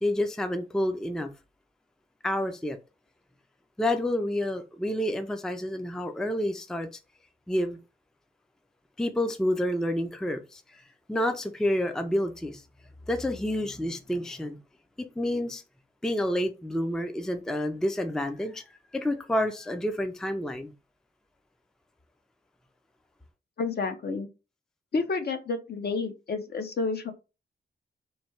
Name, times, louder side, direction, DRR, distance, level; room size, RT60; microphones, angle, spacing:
voice 1, 0.0-1.3 2.2-2.8 3.8-6.9 7.5-7.8 9.0-10.8 11.1-12.6 13.1-14.6 15.0-15.6 16.0-20.7, left 1 dB, 5° left, 0.4 m, -29 dB
voice 2, 23.6-24.3 24.9-27.1, left 4 dB, 55° left, 0.7 m, -30 dB
3.1 x 2.7 x 4.4 m
wide cardioid pair, 115°, 20 cm